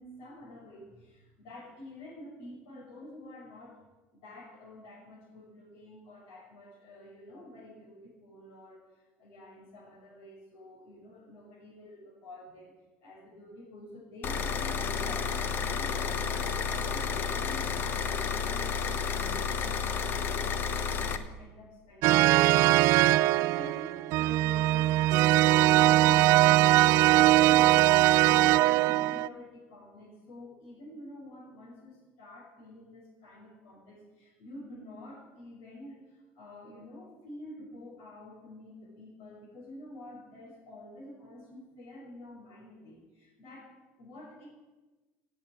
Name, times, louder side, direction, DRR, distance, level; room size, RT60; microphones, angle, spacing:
voice 1, 0.0-3.8 4.1-12.7 13.0-44.5, left 1 dB, 75° left, -6 dB, 5.3 m, -48 dB
sound 1, 14.2-21.2, left 6 dB, 45° left, 1.2 m, -31 dB
sound 2, 22.0-29.3, right 16 dB, 65° right, 0.5 m, -21 dB
17.0 x 7.9 x 8.7 m, 1.2 s
supercardioid pair, 115°, 5 cm